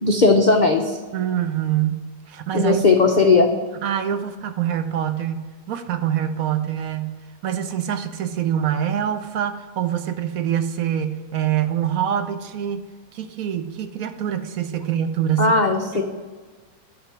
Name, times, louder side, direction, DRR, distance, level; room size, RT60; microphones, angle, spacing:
voice 1, 0.0-1.0 2.5-3.5 15.4-16.0, left 3 dB, 70° left, 3 dB, 0.4 m, -17 dB
voice 2, 1.1-2.9 3.2-3.4 3.8-12.8 13.1-15.5 15.9-16.0, right 10 dB, 70° right, 10 dB, 1.0 m, -25 dB
9.9 x 4.0 x 5.9 m, 1.4 s
omnidirectional pair, 1.7 m